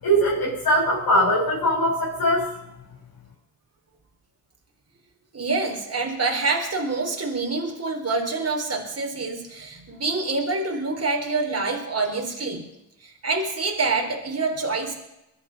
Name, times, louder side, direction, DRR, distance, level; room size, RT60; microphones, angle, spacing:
voice 1, 0.0-2.5, equal, 50° left, -5 dB, 7.5 m, -21 dB
voice 2, 5.3-12.6 13.2-14.9, right 3 dB, 30° right, 2 dB, 4.3 m, -26 dB
22.0 x 9.4 x 5.4 m, 0.87 s
hypercardioid pair, 45°, 47 cm